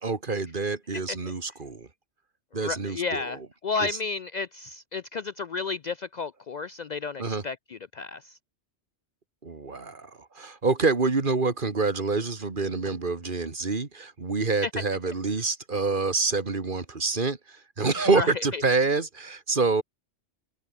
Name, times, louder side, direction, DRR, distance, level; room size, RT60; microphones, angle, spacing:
voice 1, 0.0-1.9 2.5-3.4 3.8-3.9 7.2-7.4 9.4-10.1 10.4-19.8, right 4 dB, 45° right, 2.2 m, -27 dB
voice 2, 2.5-8.4 14.6-14.7 18.0-18.6, left 4 dB, 60° left, 0.4 m, -32 dB
omnidirectional pair, 1.2 m